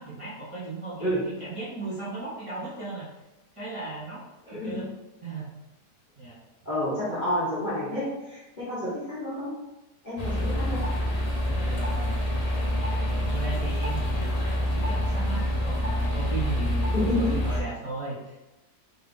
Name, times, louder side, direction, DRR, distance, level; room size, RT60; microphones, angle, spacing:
voice 1, 0.0-3.1 3.5-4.9 5.2-5.5 6.2-6.4 10.3-10.5 11.5-12.2 12.8-13.0 13.3-18.5, right 3 dB, 20° right, -12 dB, 1.4 m, -37 dB
voice 2, 4.5-4.8 6.6-9.5 10.0-10.8 16.9-17.4, left 1 dB, 30° left, -10 dB, 1.5 m, -29 dB
sound 1, 10.2-17.6, equal, 50° left, 0.4 m, -27 dB
3.9 x 3.3 x 3.6 m, 1.0 s
omnidirectional pair, 1.8 m